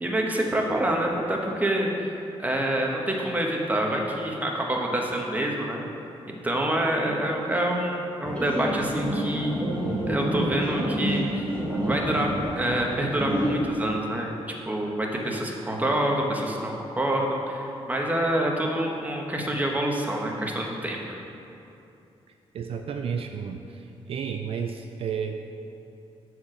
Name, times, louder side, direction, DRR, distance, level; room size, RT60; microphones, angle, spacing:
voice 1, 0.0-5.8 6.4-9.6 10.1-11.4 11.9-21.2, right 1 dB, 15° right, 0 dB, 1.1 m, -27 dB
sound 1, 8.2-13.6, equal, 10° left, 1.7 m, -28 dB
voice 2, 22.5-25.4, right 7 dB, 65° right, 5 dB, 0.4 m, -32 dB
7.1 x 4.5 x 6.4 m, 2.7 s
cardioid pair, 90°, 11 cm